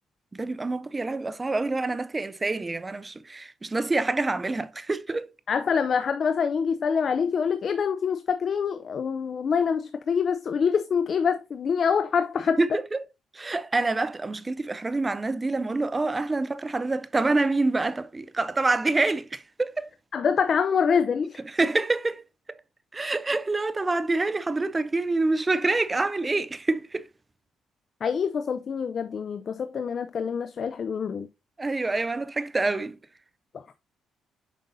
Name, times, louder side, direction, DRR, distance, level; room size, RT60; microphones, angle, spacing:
voice 1, 0.3-5.3 12.6-13.0 13.3-19.9 21.4-22.2 22.5-22.6 22.9-27.1 31.6-33.0, right 3 dB, 20° right, 0.5 m, -26 dB
voice 2, 5.5-12.6 20.1-21.4 28.0-31.3, left 6 dB, 50° left, 0.5 m, -25 dB
7.4 x 5.3 x 2.7 m
cardioid pair, 90°, 0 cm